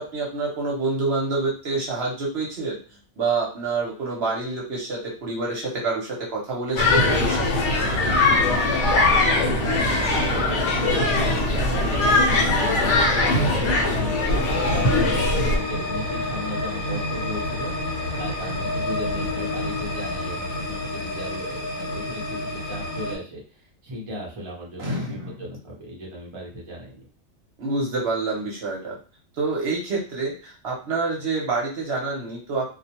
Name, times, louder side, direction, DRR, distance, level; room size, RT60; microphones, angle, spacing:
voice 1, 0.0-2.8 3.2-7.5 24.8-25.3 27.6-29.0 29.4-32.7, right 3 dB, 55° right, -3 dB, 0.9 m, -27 dB
sound 1, 6.8-15.6, left 2 dB, 65° left, 0.9 m, -21 dB
voice 2, 8.4-27.1, equal, 30° right, -3 dB, 0.6 m, -37 dB
sound 2, 14.3-23.2, left 1 dB, 85° left, 1.1 m, -29 dB
2.4 x 2.1 x 2.8 m, 0.39 s
omnidirectional pair, 1.4 m